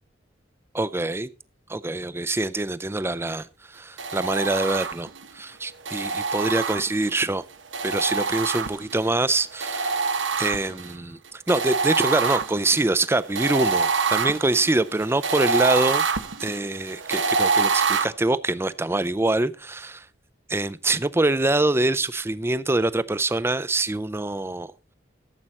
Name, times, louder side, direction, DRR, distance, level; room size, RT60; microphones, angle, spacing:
voice 1, 0.7-1.3 1.7-7.4 7.8-10.0 10.4-16.0 16.4-19.9 20.5-24.7, right 2 dB, 15° right, 0.5 m, -25 dB
sound 1, 4.0-5.2 5.9-7.2 7.7-9.1 9.6-10.9 11.5-18.0, right 5 dB, 90° right, 1.2 m, -25 dB
14.0 x 7.6 x 4.2 m
head